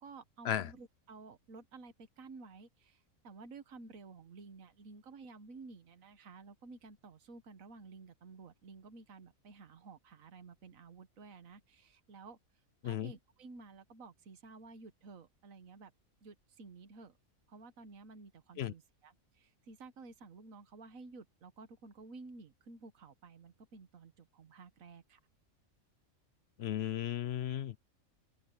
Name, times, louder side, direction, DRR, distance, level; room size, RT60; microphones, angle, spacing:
voice 1, 0.0-12.4 12.8-15.9 16.2-17.1 17.5-25.2, right 4 dB, 70° right, 1.7 m, -53 dB
voice 2, 26.6-27.8, left 10 dB, 55° left, 0.8 m, -35 dB
omnidirectional pair, 1.5 m